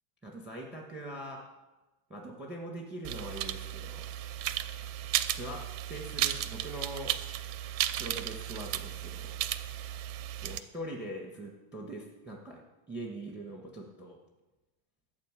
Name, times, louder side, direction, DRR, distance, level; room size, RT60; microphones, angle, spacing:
voice 1, 0.2-1.4 2.1-4.1 5.2-7.1 7.9-9.3 10.4-12.6 12.9-14.2, right 1 dB, ahead, 0 dB, 1.1 m, -42 dB
sound 1, 3.0-10.6, right 12 dB, 80° right, 2.0 m, -35 dB
13.5 x 8.7 x 7.7 m, 1.1 s
omnidirectional pair, 3.5 m